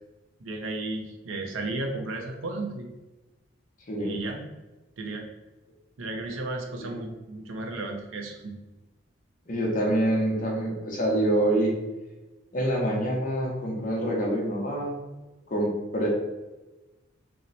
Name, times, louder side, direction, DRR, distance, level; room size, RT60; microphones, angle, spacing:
voice 1, 0.4-2.9 4.0-4.5 5.0-5.3 6.0-8.6, right 2 dB, 85° right, 2 dB, 0.5 m, -34 dB
voice 2, 3.9-4.2 6.8-7.0 9.5-11.7 12.5-15.0 15.5-16.1, right 1 dB, 40° left, -2 dB, 0.7 m, -26 dB
2.8 x 2.1 x 3.9 m, 1.1 s
head